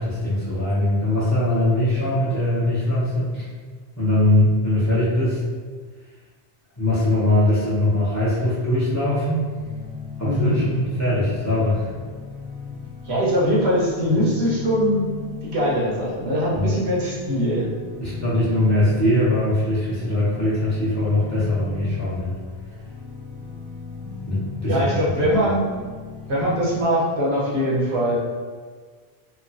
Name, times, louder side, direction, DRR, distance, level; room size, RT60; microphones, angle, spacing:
voice 1, 0.0-3.5 4.0-5.4 6.8-9.5 10.2-11.9 16.5-16.7 18.0-22.4 24.3-25.3, left 1 dB, 20° left, -9 dB, 0.7 m, -21 dB
sound 1, 9.6-26.8, left 5 dB, 40° right, 0.6 m, -36 dB
voice 2, 10.2-10.6 13.1-15.1 15.4-17.7 24.7-25.9 26.3-28.2, equal, 75° right, -6 dB, 1.0 m, -22 dB
3.0 x 2.2 x 2.6 m, 1.5 s
omnidirectional pair, 1.1 m